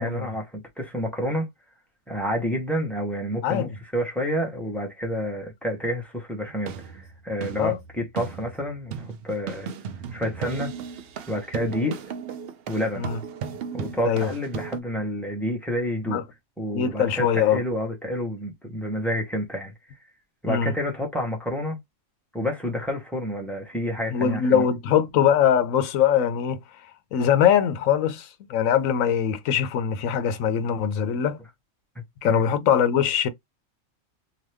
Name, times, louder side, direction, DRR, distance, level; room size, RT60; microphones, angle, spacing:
voice 1, 0.0-1.5 2.1-9.7 10.1-10.7 11.3-12.0 12.7-13.1 13.7-16.2 16.6-19.7 20.4-21.8 22.3-24.6 31.9-32.4, equal, ahead, 0.9 m, -29 dB
sound 1, 6.5-14.8, right 6 dB, 60° right, 0.7 m, -36 dB
voice 2, 16.7-17.6 20.5-20.7 24.1-26.6 27.1-31.4 32.2-33.3, left 8 dB, 90° left, 1.1 m, -22 dB
2.9 x 2.3 x 3.3 m
omnidirectional pair, 1.3 m